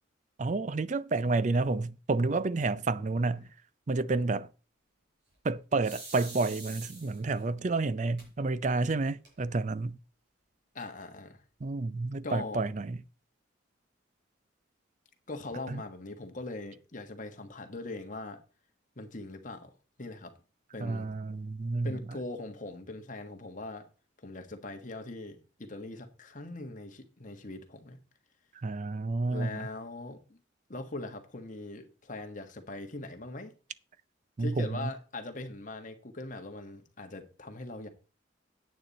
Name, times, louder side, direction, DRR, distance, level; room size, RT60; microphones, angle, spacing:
voice 1, 0.4-3.5 3.9-4.5 5.4-10.0 11.6-13.0 15.7-15.8 20.8-22.0 28.6-29.7 34.4-34.9, right 3 dB, 40° right, 0.4 m, -30 dB
sound 1, 5.8-7.4 8.2-8.3 8.7-8.8 9.0-9.6, right 2 dB, 60° right, 5.8 m, -45 dB
voice 2, 10.7-11.4 12.0-12.7 15.3-18.4 19.0-19.7 20.0-20.3 20.7-21.1 21.8-23.9 24.2-28.0 29.3-30.4 30.7-33.5 34.4-37.9, left 2 dB, 40° left, 1.5 m, -41 dB
9.3 x 9.1 x 4.1 m
head